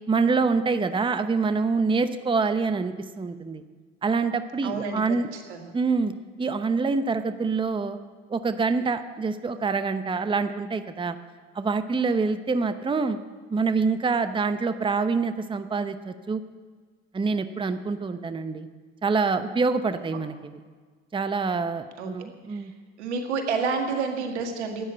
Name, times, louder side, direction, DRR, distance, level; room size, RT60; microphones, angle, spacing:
voice 1, 0.1-3.6 4.0-5.3 5.7-6.1 6.4-8.0 8.3-11.2 11.5-13.2 13.5-16.4 17.1-18.7 19.0-20.5 21.1-22.7, right 4 dB, 15° right, 10 dB, 0.8 m, -26 dB
voice 2, 4.6-5.7 22.0-22.1 22.5-22.7 23.0-24.9, right 5 dB, 85° right, 4 dB, 1.9 m, -29 dB
12.5 x 9.4 x 8.8 m, 1.5 s
hypercardioid pair, 75°, 33 cm